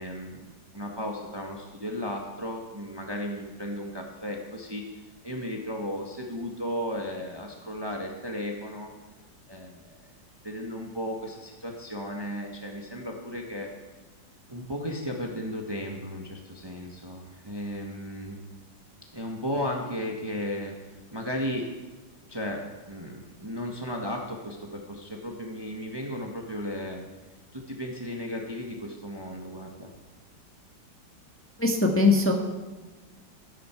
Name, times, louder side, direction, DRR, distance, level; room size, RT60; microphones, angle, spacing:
voice 1, 0.0-4.8 5.2-8.9 9.5-10.0 10.4-13.7 14.5-18.4 19.1-20.7 21.1-21.7 22.3-27.0 27.5-29.9, equal, 15° right, 1 dB, 1.4 m, -35 dB
voice 2, 31.6-32.3, left 3 dB, 5° left, 1 dB, 1.4 m, -21 dB
18.5 x 10.5 x 4.6 m, 1.3 s
omnidirectional pair, 2.0 m